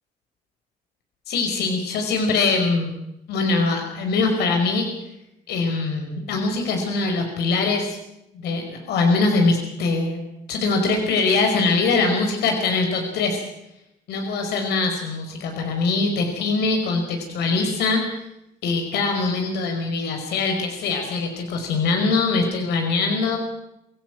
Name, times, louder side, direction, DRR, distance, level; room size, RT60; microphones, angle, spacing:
voice 1, 1.3-2.9 3.3-4.9 5.5-8.0 8.3-10.2 10.5-13.4 14.1-18.0 18.6-23.4, left 3 dB, 90° left, 4 dB, 5.0 m, -22 dB
27.5 x 17.0 x 6.2 m, 0.84 s
cardioid pair, 140°, 17 cm